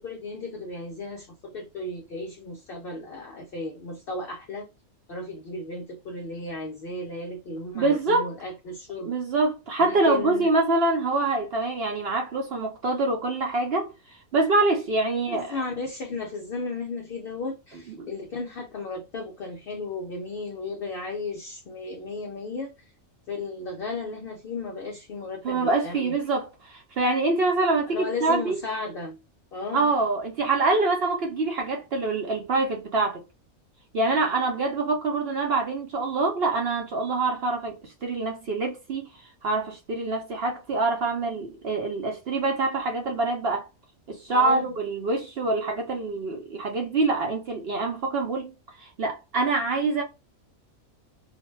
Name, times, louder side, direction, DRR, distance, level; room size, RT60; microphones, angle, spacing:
voice 1, 0.0-4.7 5.1-9.1 9.8-10.5 15.3-22.7 23.3-26.2 27.9-29.2 29.5-29.9 44.3-44.7, left 3 dB, 65° left, 0.6 m, -34 dB
voice 2, 7.7-8.3 9.0-13.9 14.3-15.6 17.9-18.1 25.4-28.6 29.7-33.2 33.9-39.1 39.4-43.7 44.1-50.0, right 3 dB, 55° right, 0.7 m, -25 dB
2.6 x 2.1 x 3.1 m
omnidirectional pair, 1.5 m